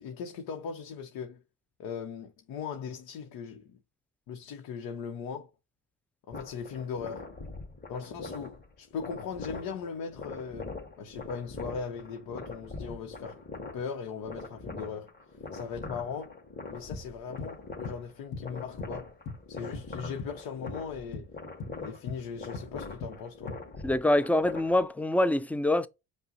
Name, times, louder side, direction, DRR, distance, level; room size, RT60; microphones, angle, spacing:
voice 1, 0.0-1.4 1.8-3.8 4.3-5.5 6.3-7.3 7.9-15.1 15.5-16.3 16.7-19.1 19.5-21.3 21.8-23.5, left 6 dB, 85° left, 0.8 m, -39 dB
sound 1, 6.3-25.0, left 3 dB, 30° left, 1.9 m, -43 dB
Arturia Acid Kick, 16.7-19.9 20.2-20.4 20.7-23.7, left 3 dB, 55° left, 2.2 m, -40 dB
voice 2, 23.8-25.9, left 1 dB, 5° left, 0.3 m, -25 dB
5.4 x 2.1 x 4.0 m
cardioid pair, 80°, 35 cm